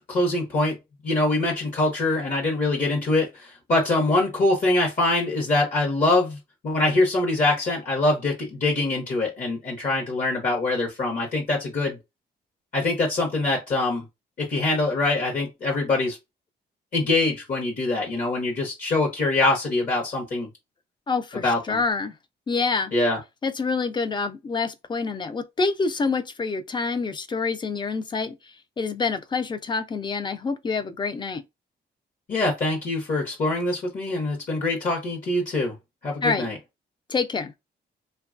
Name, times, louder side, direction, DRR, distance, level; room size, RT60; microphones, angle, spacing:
voice 1, 0.1-0.8 1.0-6.4 6.6-12.0 12.7-14.0 14.4-16.2 16.9-20.5 21.4-21.8 22.9-23.2 32.3-35.7 36.0-36.6, left 2 dB, 50° left, 0.9 m, -24 dB
voice 2, 21.1-22.1 22.5-22.9 23.4-28.3 28.8-31.4 36.2-36.5 37.1-37.5, left 4 dB, 25° left, 0.4 m, -27 dB
3.0 x 2.2 x 2.4 m
cardioid pair, 125°, 18 cm